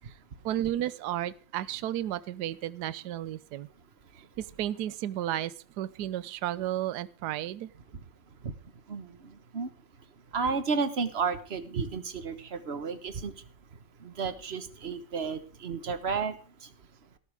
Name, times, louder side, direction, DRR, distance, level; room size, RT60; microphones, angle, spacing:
voice 1, 0.4-3.7 4.4-7.7, right 12 dB, 65° right, 17 dB, 1.2 m, -33 dB
voice 2, 10.3-13.3 14.0-16.4, right 5 dB, 35° right, 11 dB, 1.3 m, -32 dB
17.5 x 13.5 x 3.5 m, 0.37 s
omnidirectional pair, 2.2 m